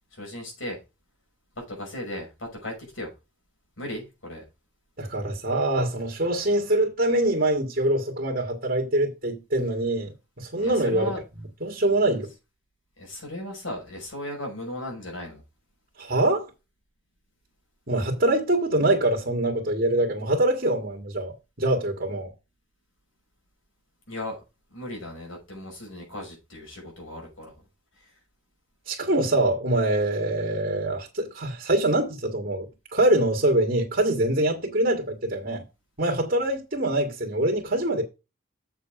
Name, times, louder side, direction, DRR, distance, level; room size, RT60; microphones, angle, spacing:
voice 1, 0.1-0.8 1.6-3.1 3.8-4.4 10.6-11.2 13.0-15.4 24.1-24.4 24.7-27.5, left 1 dB, 80° left, 5.8 m, -36 dB
voice 2, 5.0-10.1 10.4-11.1 11.6-12.3 16.0-16.5 17.9-22.3 28.9-35.6 36.0-38.0, right 1 dB, 50° right, 2.0 m, -24 dB
7.5 x 6.6 x 5.0 m
head